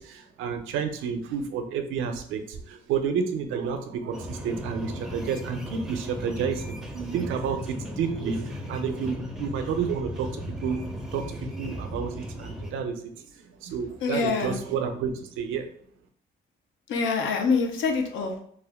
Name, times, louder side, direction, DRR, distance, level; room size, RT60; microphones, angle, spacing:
voice 1, 0.0-13.1 13.6-15.7, right 6 dB, 90° right, 7 dB, 0.4 m, -30 dB
sound 1, 4.1-12.7, equal, 5° right, 0.4 m, -36 dB
voice 2, 14.0-14.6 16.9-18.4, left 4 dB, 75° left, 4 dB, 0.6 m, -25 dB
2.3 x 2.1 x 3.4 m, 0.62 s
cardioid pair, 90°, 20 cm